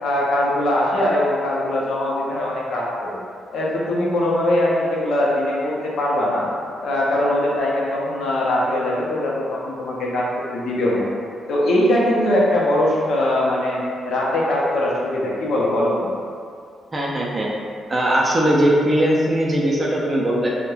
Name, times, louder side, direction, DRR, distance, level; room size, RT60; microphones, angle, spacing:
voice 1, 0.0-3.2 3.5-6.4 6.8-10.3 10.5-11.1 11.5-16.1, left 1 dB, 75° left, -4 dB, 0.5 m, -21 dB
voice 2, 16.9-17.5 17.9-20.5, right 1 dB, 30° right, -4 dB, 0.3 m, -19 dB
2.9 x 2.1 x 2.2 m, 2.3 s
cardioid pair, 90°, 0 cm